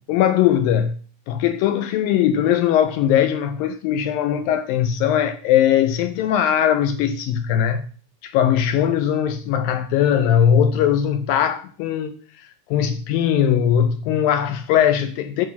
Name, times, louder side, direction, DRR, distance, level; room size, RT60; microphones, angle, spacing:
voice 1, 0.1-1.0 1.3-7.8 8.2-15.5, left 9 dB, 80° left, 2.1 m, -20 dB
8.4 x 7.0 x 5.8 m
omnidirectional pair, 4.6 m